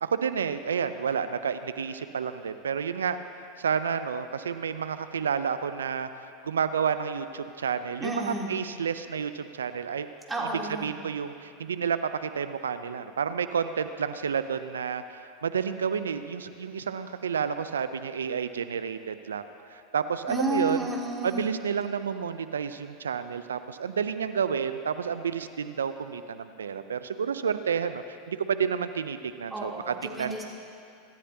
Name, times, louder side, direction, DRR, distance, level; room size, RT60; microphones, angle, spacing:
voice 1, 0.0-3.2 3.6-10.1 10.8-20.8 21.2-30.4, right 7 dB, 80° right, 11 dB, 0.6 m, -30 dB
voice 2, 8.0-8.6 10.3-10.9 20.3-21.5 29.5-30.4, right 2 dB, 10° right, -4 dB, 3.5 m, -31 dB
25.5 x 13.0 x 2.9 m, 2.5 s
hypercardioid pair, 90°, 0 cm